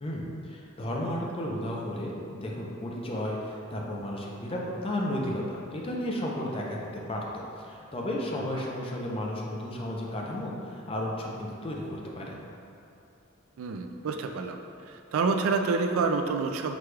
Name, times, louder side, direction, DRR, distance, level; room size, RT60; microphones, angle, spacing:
voice 1, 0.0-12.4, left 1 dB, 25° left, -2 dB, 0.5 m, -33 dB
voice 2, 13.6-14.6 14.8-16.8, right 4 dB, 85° right, 5 dB, 0.3 m, -28 dB
5.9 x 2.3 x 3.2 m, 2.7 s
head